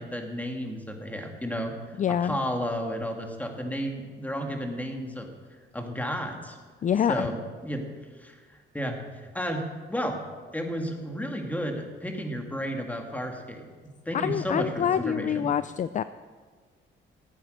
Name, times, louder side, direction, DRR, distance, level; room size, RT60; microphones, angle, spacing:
voice 1, 0.0-5.3 5.7-6.6 7.1-7.9 8.2-9.6 9.9-10.2 10.5-13.7 14.1-15.5, equal, 10° left, 3 dB, 2.2 m, -32 dB
voice 2, 2.0-2.4 6.8-7.3 14.1-16.0, left 9 dB, 40° left, 13 dB, 0.4 m, -26 dB
14.5 x 9.2 x 6.7 m, 1.5 s
cardioid pair, 90°, 20 cm